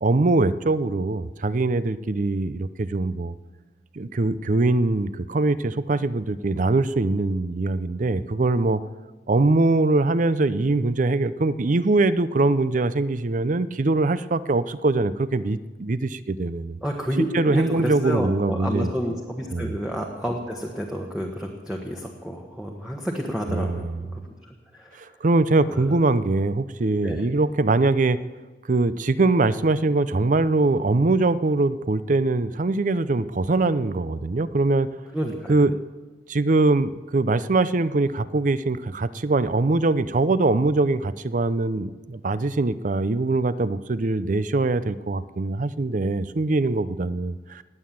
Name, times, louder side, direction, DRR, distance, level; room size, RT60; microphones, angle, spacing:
voice 1, 0.0-3.3 4.0-8.8 9.3-16.8 17.3-18.9 19.5-19.7 23.5-24.1 25.0-28.2 28.7-34.9 35.5-35.8 36.3-47.6, right 2 dB, 45° right, 16 dB, 0.5 m, -22 dB
voice 2, 16.8-25.0 27.0-27.3 35.1-35.5, equal, 5° right, 0 dB, 1.3 m, -30 dB
18.5 x 8.7 x 7.5 m, 1.3 s
head